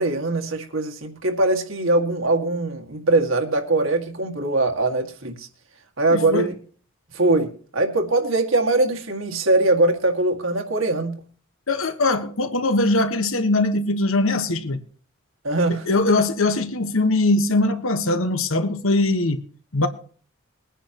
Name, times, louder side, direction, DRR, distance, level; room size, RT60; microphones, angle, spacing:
voice 1, 0.0-5.5 6.0-6.5 7.1-11.2 15.4-15.9, right 2 dB, 75° right, 2.1 m, -21 dB
voice 2, 6.1-6.5 11.7-14.8 15.9-19.4 19.7-19.9, left 2 dB, 80° left, 1.3 m, -21 dB
22.0 x 9.9 x 3.0 m
head